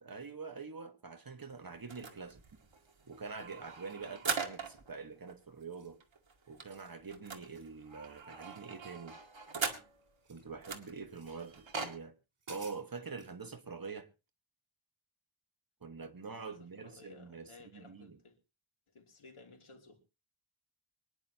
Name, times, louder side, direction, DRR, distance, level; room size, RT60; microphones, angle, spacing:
voice 1, 0.0-2.4 3.1-6.0 6.5-9.2 10.3-12.2 12.5-14.1 15.8-18.2, right 4 dB, 45° right, 1.6 m, -45 dB
sound 1, 1.9-4.9 5.3-5.4 5.6-5.7 6.0-10.1 10.6-12.0, right 5 dB, 70° right, 2.1 m, -41 dB
sound 2, 5.7-6.1 6.5-7.0 7.3-7.7 8.4-9.0 9.3-10.5 11.1-11.5 12.0-12.1 12.4-13.3, right 4 dB, 85° right, 4.8 m, -56 dB
voice 2, 16.3-18.4 18.9-20.0, left 3 dB, 90° left, 3.1 m, -57 dB
24.5 x 10.0 x 2.9 m
wide cardioid pair, 95°, 48 cm